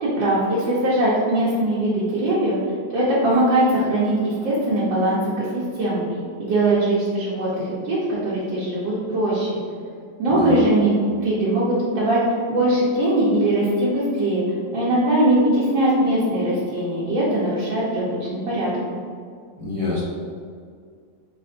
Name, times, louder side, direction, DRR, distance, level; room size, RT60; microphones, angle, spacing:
voice 1, 0.0-2.5 2.9-6.0 6.4-9.6 10.2-12.2 12.5-14.4 14.7-18.2 18.5-18.8, right 1 dB, 80° right, -9 dB, 1.6 m, -21 dB
voice 2, 19.6-20.0, left 3 dB, 25° right, -8 dB, 0.8 m, -26 dB
5.1 x 3.9 x 2.5 m, 2.1 s
omnidirectional pair, 2.0 m